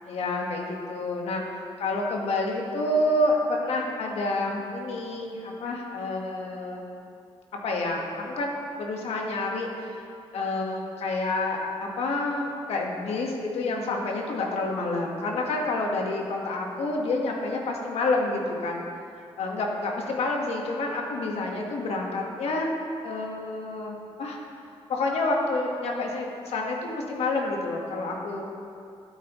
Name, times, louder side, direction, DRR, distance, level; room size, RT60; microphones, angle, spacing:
voice 1, 0.1-6.8 7.5-8.5 8.7-18.8 19.4-22.7 23.0-24.4 24.9-28.5, left 2 dB, 80° left, 0 dB, 1.5 m, -28 dB
13.0 x 8.7 x 3.1 m, 2.5 s
cardioid pair, 85°, 10 cm